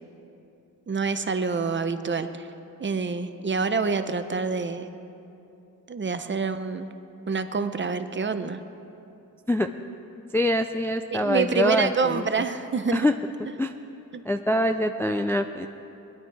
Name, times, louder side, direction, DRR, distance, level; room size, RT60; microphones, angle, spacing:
voice 1, 0.9-2.5 2.8-4.9 5.9-6.9 7.3-8.6 11.1-13.1 14.1-14.2, right 5 dB, 30° right, 9 dB, 0.6 m, -27 dB
voice 2, 10.3-12.3 12.9-13.1 13.6-13.7 14.2-15.7, left 1 dB, 5° left, 6 dB, 0.3 m, -24 dB
20.0 x 11.0 x 4.6 m, 2.8 s
wide cardioid pair, 125°, 36 cm